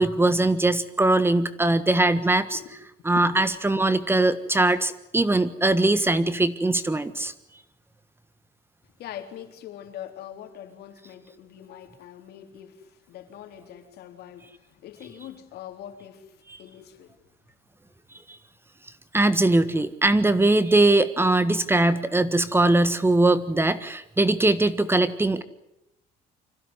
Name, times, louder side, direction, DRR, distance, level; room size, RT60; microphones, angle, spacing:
voice 1, 0.0-2.6 3.0-7.3 19.1-25.4, right 2 dB, 15° right, 13 dB, 1.5 m, -21 dB
voice 2, 9.0-17.2, left 10 dB, 75° left, 6 dB, 3.7 m, -43 dB
25.5 x 16.0 x 9.7 m, 0.86 s
cardioid pair, 110°, 17 cm